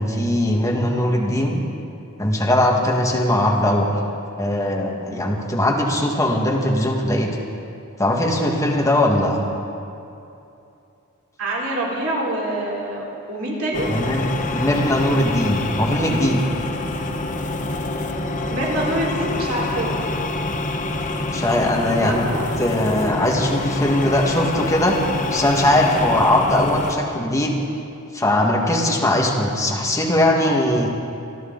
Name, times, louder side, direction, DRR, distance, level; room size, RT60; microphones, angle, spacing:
voice 1, 0.0-1.6 2.2-3.9 4.4-7.3 8.0-9.4 13.9-14.2 14.5-16.4 21.3-22.2 22.6-25.0 25.3-27.5 28.1-30.9, left 1 dB, 15° left, -1 dB, 1.8 m, -20 dB
voice 2, 11.4-13.9 18.5-19.9 22.0-22.5, right 1 dB, 70° right, -4 dB, 3.5 m, -25 dB
sound 1, 13.7-27.0, left 2 dB, 35° left, 0.9 m, -26 dB
26.5 x 11.0 x 4.0 m, 2.7 s
head